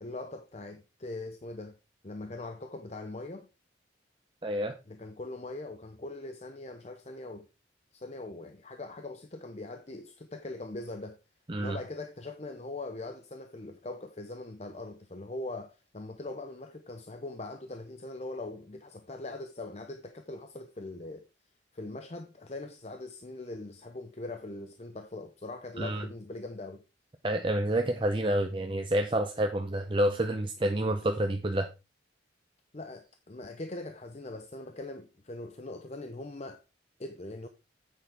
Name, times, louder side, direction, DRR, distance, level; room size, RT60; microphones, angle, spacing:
voice 1, 0.0-1.8 2.0-3.5 4.9-7.5 7.9-11.2 11.6-21.3 21.7-26.8 32.7-36.6 37.0-37.5, left 2 dB, 35° left, 0.7 m, -41 dB
voice 2, 4.4-4.7 11.5-11.8 25.8-26.0 27.2-31.7, right 1 dB, 25° right, 0.7 m, -28 dB
9.8 x 8.3 x 3.5 m
head